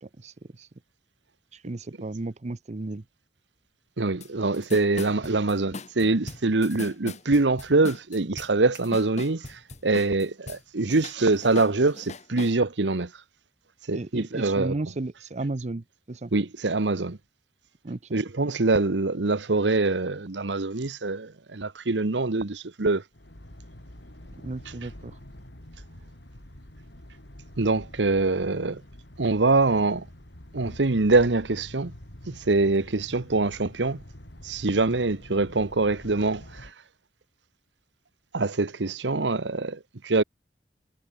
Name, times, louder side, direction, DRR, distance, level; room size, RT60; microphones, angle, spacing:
voice 1, 0.0-0.7 1.5-3.0 13.9-16.3 17.8-18.2 24.4-25.2, right 2 dB, 40° right, 0.7 m, -34 dB
voice 2, 4.0-13.1 13.9-14.7 16.3-17.2 18.1-23.0 27.6-28.8 29.2-30.1 30.5-31.9 32.3-34.0 34.4-36.7 38.3-40.2, right 3 dB, 90° right, 1.1 m, -24 dB
sound 1, 4.2-4.3 4.5-10.6 10.9-12.6, left 2 dB, 40° left, 2.1 m, -40 dB
sound 2, 23.1-36.7, left 1 dB, 75° left, 4.0 m, -46 dB
head